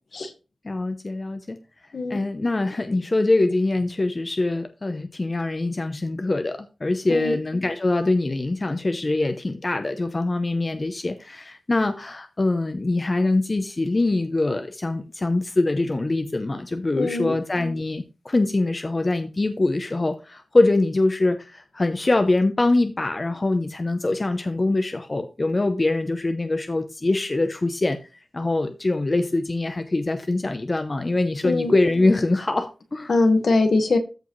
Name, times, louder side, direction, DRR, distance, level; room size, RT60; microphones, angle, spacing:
voice 1, 0.6-1.6 2.1-28.0 28.3-33.1, left 2 dB, 30° left, 8 dB, 0.7 m, -23 dB
voice 2, 17.0-17.3 31.4-31.7 33.1-34.0, left 3 dB, 60° left, 7 dB, 1.6 m, -21 dB
14.0 x 4.9 x 3.2 m, 0.30 s
wide cardioid pair, 125°, 0 cm